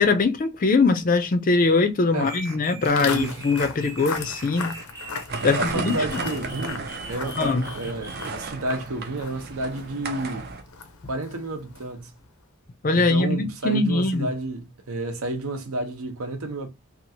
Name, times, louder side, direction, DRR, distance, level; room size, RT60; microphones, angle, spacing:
voice 1, 0.0-4.7 5.4-6.0 7.4-7.6 12.8-14.3, left 3 dB, 40° left, 0.4 m, -21 dB
sound 1, 2.2-8.5, right 1 dB, 15° right, 0.7 m, -41 dB
Walk footsteps, 2.8-12.1, left 5 dB, 80° left, 0.6 m, -38 dB
voice 2, 3.0-3.4 5.4-10.6 11.1-12.1 12.9-16.7, right 2 dB, 80° right, 0.8 m, -31 dB
sound 2, 5.3-10.6, right 4 dB, 45° right, 0.5 m, -33 dB
2.9 x 2.4 x 2.7 m
head